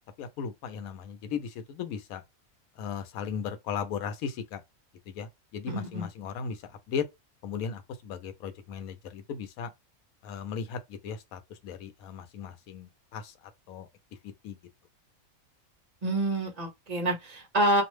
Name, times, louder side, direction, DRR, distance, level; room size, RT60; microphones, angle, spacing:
voice 1, 0.2-2.2 2.8-4.6 5.1-7.1 7.4-9.7 10.2-13.9 14.2-14.6, left 6 dB, 85° left, 1.1 m, -37 dB
voice 2, 5.7-6.1 16.0-17.8, right 1 dB, 35° right, 0.7 m, -27 dB
2.7 x 2.0 x 3.1 m
omnidirectional pair, 1.5 m